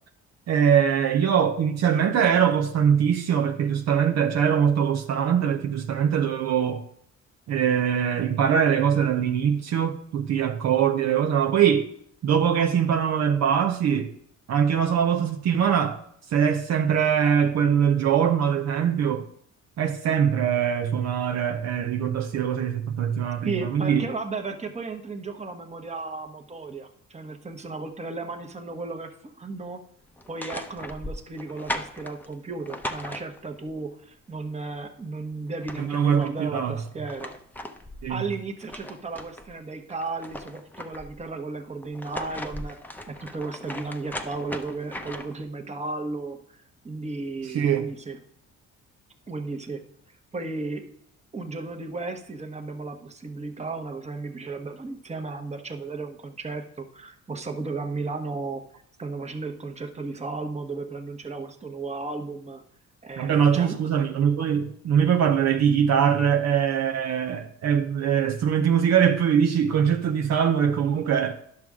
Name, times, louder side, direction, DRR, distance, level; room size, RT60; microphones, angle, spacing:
voice 1, 0.5-6.8 7.5-11.9 12.2-14.1 14.5-16.0 16.3-19.3 19.8-24.1 35.8-36.7 38.0-38.2 47.5-47.9 63.2-71.3, right 8 dB, 60° right, 0.7 m, -22 dB
voice 2, 23.4-29.8 30.3-37.3 38.1-42.8 43.1-48.2 49.3-49.8 50.3-50.8 51.3-58.6 59.0-62.6 63.0-63.8, right 3 dB, 20° right, 1.1 m, -34 dB
sound 1, 30.2-33.7 35.1-35.2 35.5-36.3 36.8-39.5 39.9-41.2 41.8-45.4, left 1 dB, 5° left, 0.7 m, -38 dB
10.5 x 6.2 x 3.6 m
cardioid pair, 90°, 30 cm